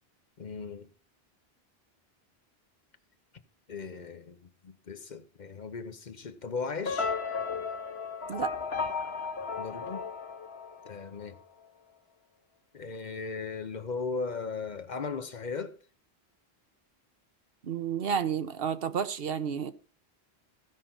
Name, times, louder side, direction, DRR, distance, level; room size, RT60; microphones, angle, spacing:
voice 1, 0.4-0.9 3.7-7.2 9.6-10.1 10.8-11.4 12.7-15.8, left 4 dB, 50° left, 0.8 m, -37 dB
sound 1, 6.9-11.2, left 5 dB, 75° left, 1.6 m, -34 dB
voice 2, 17.6-19.7, right 7 dB, 65° right, 1.0 m, -31 dB
15.0 x 5.7 x 5.5 m
omnidirectional pair, 1.1 m